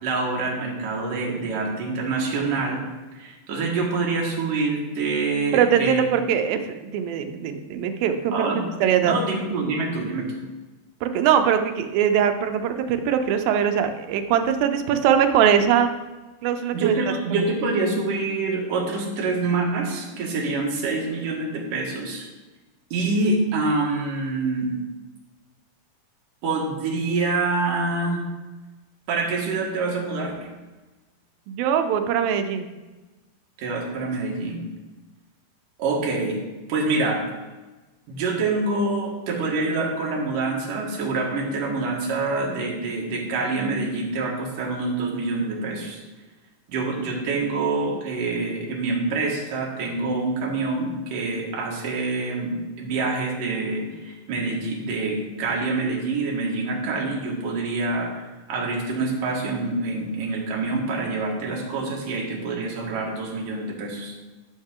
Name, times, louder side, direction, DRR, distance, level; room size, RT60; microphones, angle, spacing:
voice 1, 0.0-2.8 3.2-6.0 8.3-8.7 9.0-10.4 16.7-22.3 22.9-24.7 26.4-28.2 29.1-30.3 33.6-34.6 35.8-36.4 36.7-37.2 38.1-46.0 46.7-58.2 58.5-64.2, right 3 dB, 70° right, -1 dB, 3.1 m, -26 dB
voice 2, 5.5-8.5 8.8-9.2 11.0-15.9 16.4-17.0 17.3-17.4 31.5-32.7, right 8 dB, 85° right, 7 dB, 2.5 m, -21 dB
12.5 x 6.5 x 3.7 m, 1.2 s
omnidirectional pair, 4.0 m